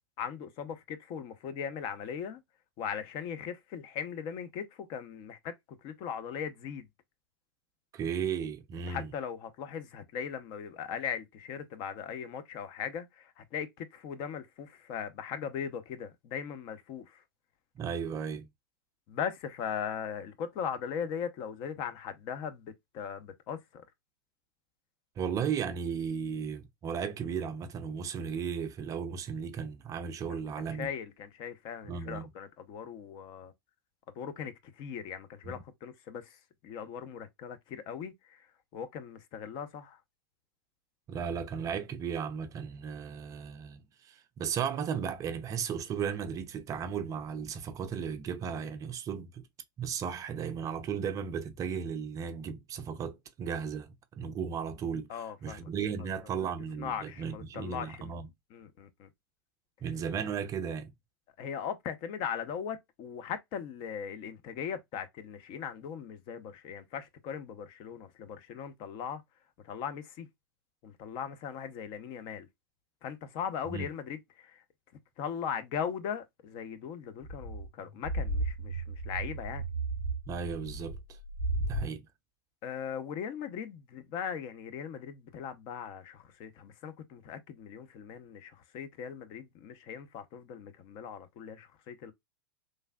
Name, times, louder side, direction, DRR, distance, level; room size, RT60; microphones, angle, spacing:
voice 1, 0.2-2.4 2.8-5.6 5.8-6.9 8.9-17.2 19.1-23.9 30.3-33.5 34.1-38.5 38.7-40.0 55.1-55.7 56.4-56.5 56.8-58.1 58.5-59.1 61.4-69.2 69.6-70.3 70.8-72.5 73.0-74.6 75.2-79.7 82.6-92.1, left 7 dB, 40° left, 0.6 m, -39 dB
voice 2, 7.9-9.1 17.8-18.5 25.2-30.9 31.9-32.2 35.5-35.6 41.1-49.4 49.8-55.1 55.4-58.3 59.8-60.9 73.7-73.9 80.3-81.0 81.7-82.0, right 7 dB, 30° right, 0.5 m, -35 dB
sound 1, 77.2-81.9, right 2 dB, 80° left, 2.3 m, -34 dB
3.2 x 2.5 x 2.2 m
hypercardioid pair, 100°, 12 cm